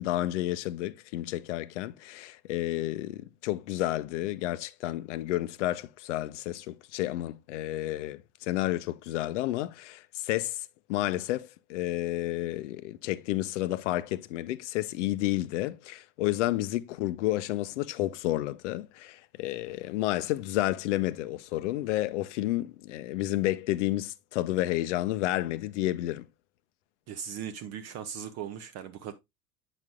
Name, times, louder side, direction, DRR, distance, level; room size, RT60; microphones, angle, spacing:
voice 1, 0.0-26.3, left 15 dB, 55° left, 0.6 m, -31 dB
voice 2, 27.1-29.1, right 8 dB, 35° right, 0.7 m, -38 dB
8.0 x 5.9 x 2.3 m
figure-of-eight pair, 80°, 44 cm